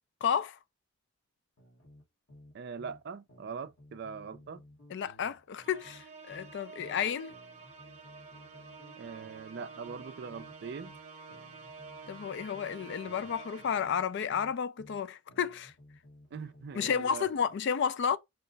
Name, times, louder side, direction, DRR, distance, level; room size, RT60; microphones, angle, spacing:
voice 1, 0.2-0.6 4.9-7.3 12.1-15.7 16.7-18.2, left 7 dB, 55° left, 0.3 m, -32 dB
sound 1, 1.6-3.0 3.3-7.0 7.3-11.0 11.3-15.0 15.3-17.4, left 1 dB, 80° left, 1.6 m, -56 dB
voice 2, 2.5-4.6 9.0-10.9 16.3-17.3, right 5 dB, 50° right, 0.4 m, -42 dB
Musical instrument, 5.6-14.1, right 4 dB, 30° right, 0.8 m, -50 dB
4.6 x 2.1 x 3.9 m
head